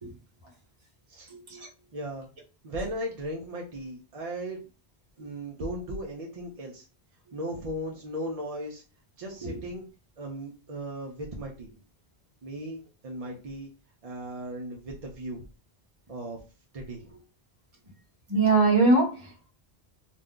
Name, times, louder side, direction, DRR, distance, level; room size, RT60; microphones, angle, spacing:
voice 1, 1.3-1.7 9.4-9.6 18.3-19.5, right 3 dB, 30° right, 0.9 m, -23 dB
voice 2, 1.9-2.3 2.6-4.7 5.2-6.8 7.3-8.8 9.2-9.8 10.2-11.7 12.4-13.7 14.0-15.4 16.1-16.4 16.7-17.1, right 1 dB, 45° right, 0.5 m, -37 dB
2.5 x 2.2 x 3.6 m
omnidirectional pair, 1.0 m